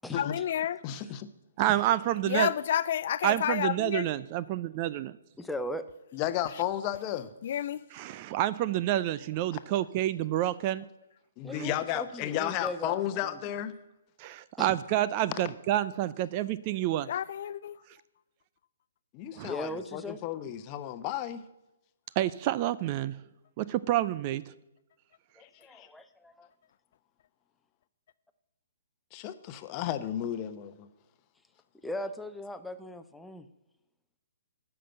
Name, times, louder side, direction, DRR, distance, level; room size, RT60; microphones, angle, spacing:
voice 1, 0.2-0.8 2.3-4.1 7.4-7.8 17.1-17.8, left 10 dB, 50° left, 0.3 m, -30 dB
voice 2, 0.8-1.3 6.1-7.3 9.5-9.6 11.4-13.7 19.1-21.4 25.4-25.9 29.1-30.9, left 11 dB, 30° left, 0.9 m, -33 dB
voice 3, 1.6-2.5 3.2-5.2 7.9-10.8 14.2-17.1 19.4-19.5 22.2-23.1 23.6-24.4, right 13 dB, 35° right, 0.4 m, -28 dB
voice 4, 5.4-5.9 11.4-13.4 14.6-14.7 19.4-20.2 25.4-26.5 31.8-33.5, left 1 dB, 5° left, 0.7 m, -38 dB
12.5 x 6.0 x 7.8 m
figure-of-eight pair, 130°, 0 cm